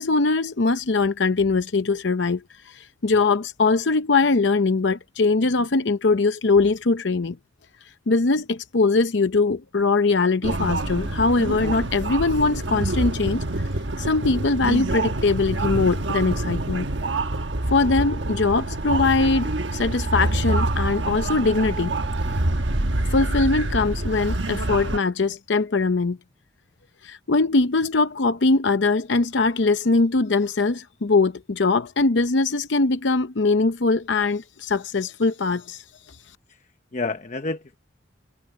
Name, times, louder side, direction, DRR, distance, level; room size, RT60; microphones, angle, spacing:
voice 1, 0.0-7.4 8.1-13.4 14.0-16.9 17.7-22.0 23.1-26.2 27.0-35.8, left 3 dB, 65° left, 0.7 m, -21 dB
sound 1, 10.4-25.0, right 2 dB, 70° right, 1.3 m, -26 dB
voice 2, 36.5-37.8, left 3 dB, 40° left, 0.9 m, -30 dB
head